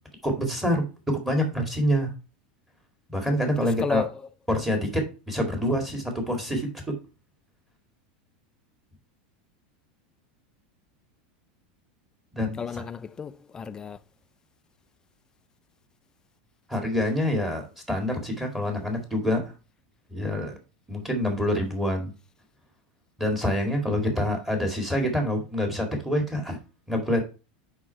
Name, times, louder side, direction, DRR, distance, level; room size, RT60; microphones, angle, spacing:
voice 1, 0.2-2.1 3.1-4.0 4.5-6.9 12.3-12.6 16.7-19.5 20.1-20.6 20.9-22.1 23.2-26.6 26.9-27.2, equal, 5° right, 1.9 m, -26 dB
voice 2, 3.6-4.2 12.6-14.0, left 6 dB, 15° left, 0.4 m, -33 dB
6.1 x 5.2 x 4.5 m
supercardioid pair, 155°, 5 cm